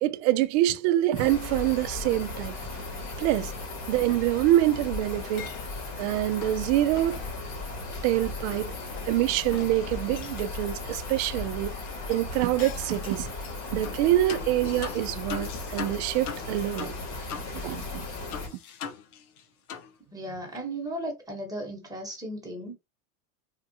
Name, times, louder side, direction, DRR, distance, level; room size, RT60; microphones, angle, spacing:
voice 1, 0.0-2.6 3.2-3.5 3.9-5.5 6.0-7.2 8.0-8.7 9.1-11.7 12.1-13.3 13.7-16.9 17.6-18.0, right 14 dB, 50° right, 0.5 m, -25 dB
sound 1, 1.1-18.5, left 3 dB, 40° left, 1.3 m, -36 dB
Chink clink, 3.9-5.9 6.4-6.6 7.0-7.3 8.5-10.5 11.9-14.2 14.7-14.8, left 10 dB, 55° left, 0.6 m, -46 dB
sound 2, 13.8-14.0 14.3-17.5 17.8-17.9 18.3-19.4 19.7-19.9, left 7 dB, 85° left, 0.9 m, -38 dB
voice 2, 20.1-22.8, right 1 dB, 10° right, 1.2 m, -36 dB
3.6 x 2.3 x 2.7 m
supercardioid pair, 135°, 43 cm